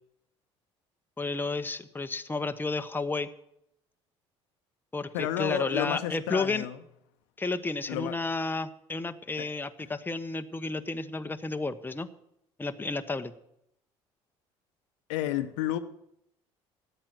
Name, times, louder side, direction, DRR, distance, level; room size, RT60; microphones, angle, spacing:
voice 1, 1.2-3.3 4.9-6.7 7.4-12.1 12.6-13.3, left 3 dB, 15° left, 0.9 m, -32 dB
voice 2, 5.1-6.8 7.9-8.2 9.4-9.5 15.1-15.8, left 12 dB, 75° left, 0.9 m, -31 dB
13.5 x 9.1 x 7.7 m
hypercardioid pair, 60°, 15 cm